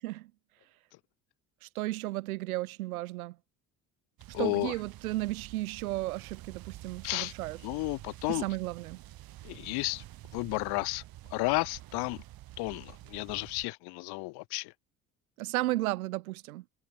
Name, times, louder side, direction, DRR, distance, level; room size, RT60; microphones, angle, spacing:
voice 1, 1.6-3.4 4.3-7.6 8.3-9.0 15.4-16.6, right 18 dB, 85° right, 1.3 m, -34 dB
sound 1, 4.2-13.7, right 16 dB, 55° right, 1.3 m, -49 dB
voice 2, 4.3-4.7 7.0-7.3 7.6-8.5 9.4-10.0 10.3-11.0 11.3-12.2 12.6-14.7, left 26 dB, 65° left, 0.7 m, -32 dB
hypercardioid pair, 55°, 42 cm